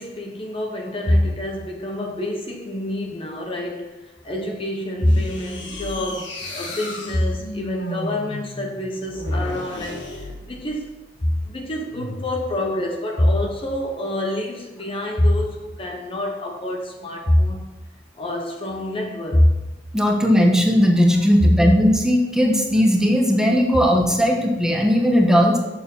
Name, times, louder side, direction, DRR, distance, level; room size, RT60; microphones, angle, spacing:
voice 1, 0.0-10.9 11.2-17.7 18.2-19.6, left 1 dB, 30° left, 0.8 m, -25 dB
sound 1, 5.0-11.0 11.9-12.5, left 1 dB, 85° left, 1.6 m, -34 dB
voice 2, 19.9-25.6, equal, 5° right, 1.2 m, -17 dB
6.8 x 6.8 x 5.5 m
head